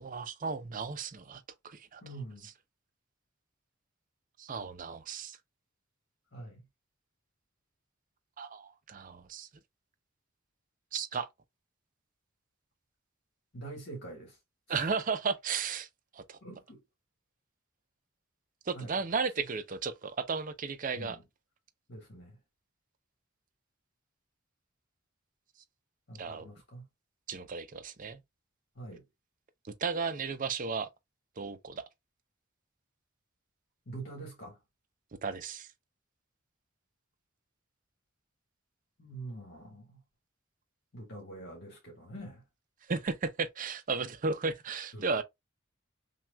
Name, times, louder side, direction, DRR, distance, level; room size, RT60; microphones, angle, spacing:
voice 1, 0.0-2.0 2.4-2.5 4.4-5.4 8.4-9.5 10.9-11.3 14.7-15.9 16.1-16.4 18.7-21.2 26.2-26.5 27.3-28.2 29.6-30.9 31.4-31.8 35.2-35.7 42.9-45.2, right 5 dB, 40° right, 0.5 m, -34 dB
voice 2, 2.0-2.5 6.3-6.6 13.5-14.4 16.4-16.8 18.7-18.9 21.0-21.2 21.9-22.4 26.1-26.8 28.7-29.1 33.8-34.6 39.0-40.0 40.9-42.4 44.9-45.2, right 2 dB, 55° left, 1.5 m, -45 dB
5.8 x 2.3 x 2.2 m
head